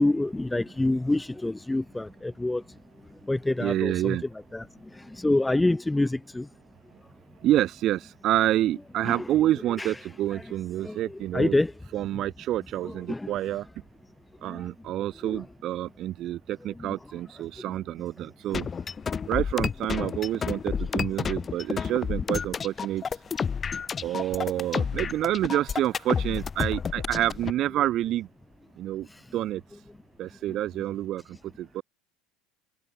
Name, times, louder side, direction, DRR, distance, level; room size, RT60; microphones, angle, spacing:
voice 1, 0.0-2.6 3.1-4.2 4.5-6.5 9.0-9.2 9.8-9.9 10.8-11.7 12.8-13.3 14.5-14.7 15.2-15.4 16.8-17.0 17.6-17.7 29.1-29.2 30.5-30.6, left 2 dB, 10° left, 1.3 m, -27 dB
voice 2, 3.6-4.2 7.4-11.6 11.9-13.7 14.4-18.7 19.3-23.0 24.0-28.3 28.8-29.1 29.3-29.6 30.2-31.8, right 13 dB, 50° right, 2.1 m, -28 dB
sound 1, 18.5-27.5, left 6 dB, 30° left, 2.3 m, -30 dB
hypercardioid pair, 75°, 0 cm